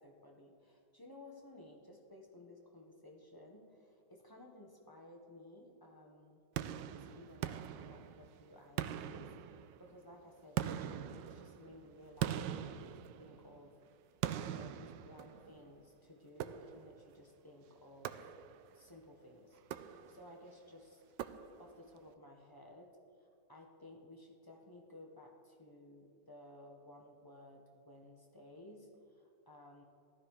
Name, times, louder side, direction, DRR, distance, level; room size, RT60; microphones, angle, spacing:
voice 1, 0.0-6.4 7.0-13.7 14.4-18.1 18.7-21.2 21.6-29.8, left 1 dB, 15° left, 1 dB, 1.2 m, -56 dB
sound 1, 6.6-8.4 8.8-9.9 10.6-13.6 14.2-15.6 16.4-17.0 18.0-18.8 19.6-20.4 21.2-21.9, right 10 dB, 85° right, 1.3 m, -42 dB
15.0 x 12.5 x 4.9 m, 2.4 s
omnidirectional pair, 1.9 m